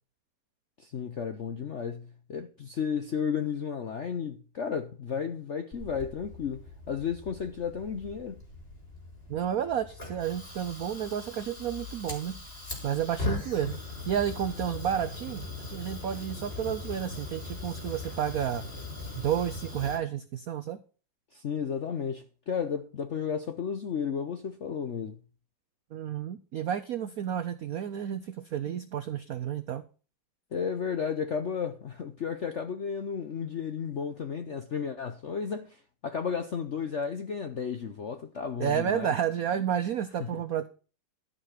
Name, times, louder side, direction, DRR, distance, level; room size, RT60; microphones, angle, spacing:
voice 1, 0.8-8.4 21.3-25.2 30.5-39.1 40.2-40.4, left 6 dB, 80° left, 0.6 m, -33 dB
Fire, 5.7-20.0, left 3 dB, 25° left, 3.1 m, -40 dB
voice 2, 9.3-12.4 12.8-18.6 19.2-20.8 25.9-29.8 38.6-40.7, right 9 dB, 80° right, 0.8 m, -31 dB
13.0 x 5.5 x 5.7 m
omnidirectional pair, 2.3 m